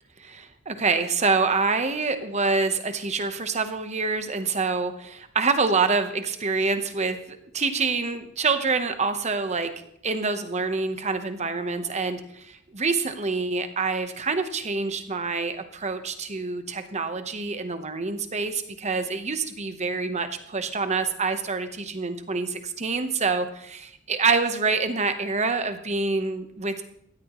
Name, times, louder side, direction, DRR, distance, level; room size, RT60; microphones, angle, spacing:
voice 1, 0.2-9.7 10.0-26.7, right 4 dB, 30° right, 8 dB, 1.0 m, -26 dB
16.0 x 13.0 x 3.1 m, 0.73 s
head